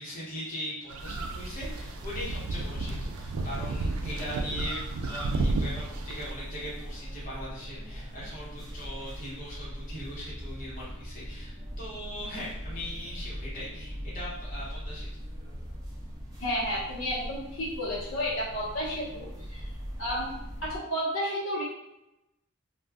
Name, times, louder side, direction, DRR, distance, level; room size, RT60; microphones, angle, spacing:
voice 1, 0.0-15.1, equal, 40° left, -8 dB, 1.1 m, -40 dB
sound 1, 0.9-6.3, right 2 dB, 85° right, 0.3 m, -32 dB
sound 2, 1.0-20.8, equal, 15° right, 0.5 m, -41 dB
voice 2, 16.4-19.6 20.0-21.6, equal, 70° left, -7 dB, 1.0 m, -32 dB
2.4 x 2.3 x 3.4 m, 0.87 s
head